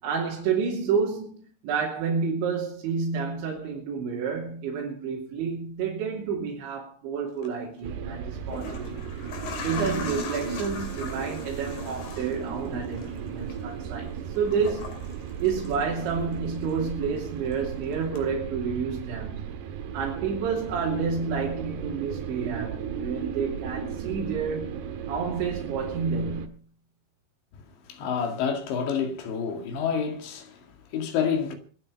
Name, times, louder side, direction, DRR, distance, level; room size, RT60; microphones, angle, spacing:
voice 1, 0.0-9.0 9.6-14.9 15.4-19.4 19.9-24.8 25.1-26.5, right 5 dB, 85° right, 5.3 m, -29 dB
sound 1, 7.3-7.5 8.3-16.3 16.6-17.7 18.2-18.3, left 4 dB, 55° left, 4.3 m, -41 dB
sound 2, 7.8-26.5, right 7 dB, 70° right, 3.3 m, -35 dB
voice 2, 27.9-31.6, left 7 dB, 80° left, 4.4 m, -28 dB
24.5 x 8.9 x 5.3 m
omnidirectional pair, 5.1 m